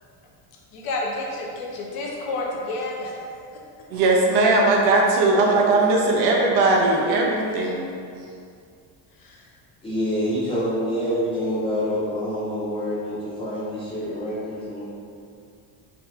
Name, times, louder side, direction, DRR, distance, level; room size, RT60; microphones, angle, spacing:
voice 1, 0.7-3.1 9.2-9.5, left 2 dB, 55° left, -2 dB, 0.7 m, -30 dB
voice 2, 3.9-7.9, right 2 dB, 65° right, -2 dB, 0.8 m, -19 dB
voice 3, 9.8-14.9, equal, 15° left, -11 dB, 0.4 m, -26 dB
4.0 x 2.8 x 3.4 m, 2.3 s
cardioid pair, 175°, 43 cm